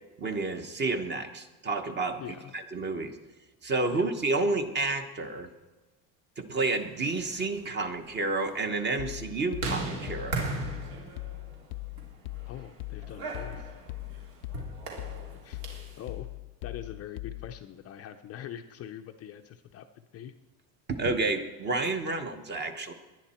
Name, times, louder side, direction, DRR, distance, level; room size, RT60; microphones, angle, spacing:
voice 1, 0.2-3.2 3.6-5.5 6.4-10.5 20.9-22.9, right 3 dB, 25° right, 7 dB, 1.0 m, -30 dB
voice 2, 2.2-2.5 3.9-4.1 12.5-13.7 15.4-15.6 16.0-16.3 16.6-20.3, left 10 dB, 35° left, 6 dB, 0.5 m, -43 dB
sound 1, 6.9-16.0, right 3 dB, 70° right, 3.4 m, -39 dB
sound 2, 9.0-17.7, left 23 dB, 90° left, 0.5 m, -41 dB
19.0 x 11.0 x 4.3 m, 1.2 s
cardioid pair, 155°, 43 cm